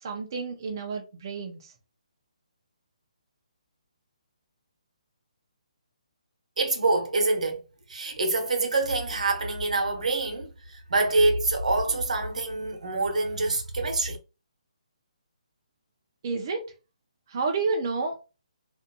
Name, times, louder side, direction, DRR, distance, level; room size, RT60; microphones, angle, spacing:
voice 1, 0.0-1.7 16.2-16.7 17.3-18.1, right 4 dB, 30° right, 0.4 m, -30 dB
voice 2, 6.6-7.6 7.9-14.2, right 2 dB, 75° right, 0.8 m, -26 dB
2.5 x 2.2 x 2.7 m
hypercardioid pair, 175°, 4 cm